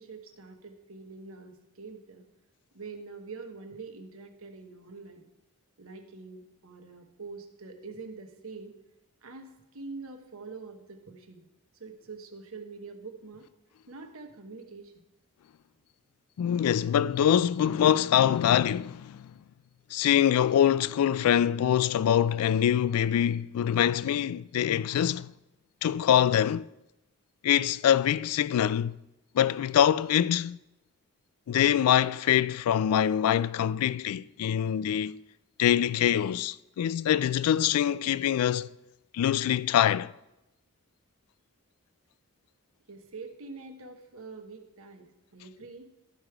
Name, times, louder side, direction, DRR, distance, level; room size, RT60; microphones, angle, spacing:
voice 1, 0.0-2.2 2.7-5.2 5.8-8.7 9.2-11.4 11.8-13.5 13.9-14.9 42.9-45.9, right 4 dB, 75° right, 1.1 m, -45 dB
voice 2, 16.4-19.3 19.9-25.3 25.8-26.7 27.4-29.0 29.3-30.6 31.5-35.2 35.6-38.7 39.1-40.1, left 10 dB, 85° left, 0.3 m, -24 dB
12.5 x 5.1 x 4.6 m
head